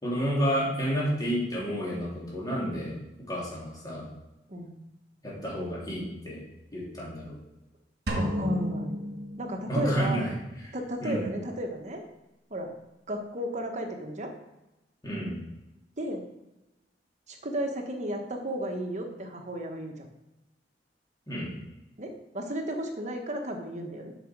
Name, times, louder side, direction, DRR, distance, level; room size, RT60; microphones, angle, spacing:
voice 1, 0.0-3.0 3.3-4.1 5.2-6.4 6.7-7.4 9.7-10.3 10.6-11.2 15.0-15.3 21.3-21.5, equal, 20° left, -6 dB, 3.5 m, -30 dB
voice 2, 8.1-9.0 9.4-10.3 10.7-12.0 12.5-12.7 13.1-14.3 16.0-16.2 17.3-19.9 22.0-24.1, equal, 45° right, 3 dB, 1.3 m, -33 dB
sound 1, 8.1-10.1, equal, 65° right, 1.6 m, -33 dB
7.9 x 6.5 x 4.7 m, 0.96 s
head